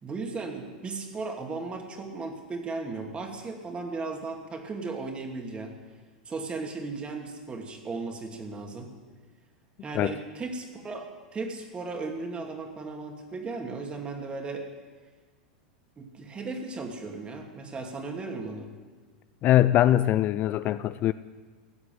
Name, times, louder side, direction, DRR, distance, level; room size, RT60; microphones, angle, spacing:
voice 1, 0.0-5.7 6.3-8.9 9.8-14.7 16.0-18.7, right 3 dB, 20° right, 2.7 m, -36 dB
voice 2, 19.4-21.1, left 13 dB, 40° left, 0.4 m, -22 dB
16.5 x 8.0 x 9.5 m
hypercardioid pair, 105°, 5 cm